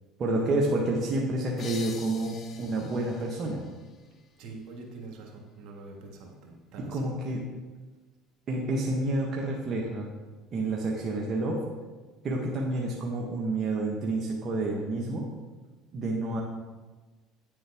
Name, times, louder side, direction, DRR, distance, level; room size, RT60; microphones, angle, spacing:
voice 1, 0.2-3.6 6.8-7.4 8.5-10.1 10.5-11.6 12.2-15.3 15.9-16.4, right 2 dB, 45° right, -2 dB, 1.2 m, -29 dB
sound 1, 1.6-5.0, left 6 dB, 45° left, 0.8 m, -47 dB
voice 2, 4.4-7.1, right 3 dB, 65° right, 1 dB, 1.8 m, -45 dB
9.4 x 7.3 x 3.5 m, 1.3 s
supercardioid pair, 100°, 0 cm